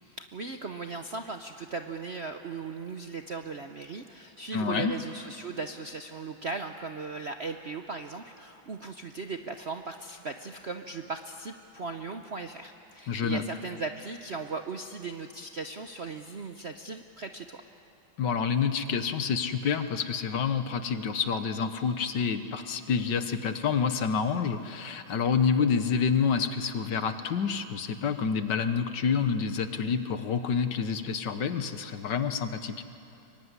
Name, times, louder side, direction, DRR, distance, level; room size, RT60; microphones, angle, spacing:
voice 1, 0.0-17.6, right 4 dB, 50° right, 6 dB, 0.8 m, -38 dB
voice 2, 4.5-4.9 13.1-13.4 18.2-32.8, left 6 dB, 65° left, 9 dB, 1.7 m, -28 dB
25.0 x 23.0 x 9.7 m, 2.7 s
omnidirectional pair, 2.2 m